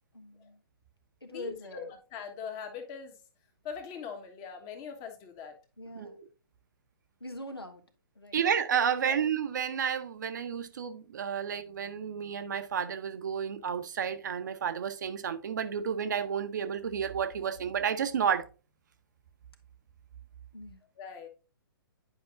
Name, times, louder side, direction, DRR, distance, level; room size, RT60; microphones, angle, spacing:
voice 1, 0.1-0.6 1.2-1.9 5.8-6.2 7.2-7.8 8.1-8.4 20.5-20.8, left 1 dB, 85° left, 1.4 m, -43 dB
voice 2, 1.3-3.2 3.6-5.6 8.9-9.2 21.0-21.3, left 6 dB, 25° left, 1.3 m, -42 dB
voice 3, 5.9-6.3 8.3-18.5, right 7 dB, 50° right, 0.7 m, -31 dB
9.8 x 5.2 x 2.5 m
figure-of-eight pair, 120°, 12 cm